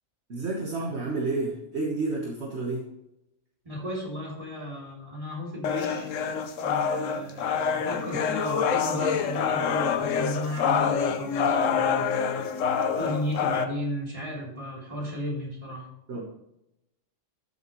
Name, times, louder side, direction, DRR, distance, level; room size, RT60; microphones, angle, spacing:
voice 1, 0.3-2.9 16.1-16.3, right 3 dB, 60° right, -2 dB, 1.6 m, -30 dB
voice 2, 3.6-6.1 6.6-12.1 13.0-15.9, equal, 25° right, -5 dB, 3.5 m, -34 dB
sound 1, 5.6-13.6, left 6 dB, 80° left, 1.1 m, -26 dB
12.5 x 6.9 x 3.1 m, 0.84 s
omnidirectional pair, 1.3 m